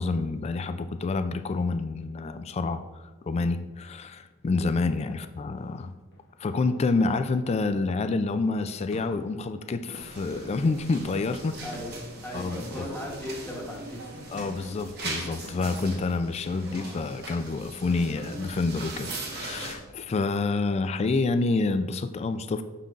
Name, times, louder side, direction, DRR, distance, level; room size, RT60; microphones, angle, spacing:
voice 1, 0.0-2.8 3.3-5.9 6.4-11.6 12.3-12.9 14.3-22.6, left 3 dB, 30° left, 10 dB, 0.3 m, -28 dB
sound 1, 6.1-16.2, left 1 dB, 55° left, 0.9 m, -50 dB
sound 2, 9.9-19.8, right 2 dB, 50° right, 1.0 m, -40 dB
voice 2, 11.6-12.0 12.2-14.2, left 1 dB, 10° left, -3 dB, 1.0 m, -37 dB
6.6 x 5.7 x 2.5 m, 1.2 s
head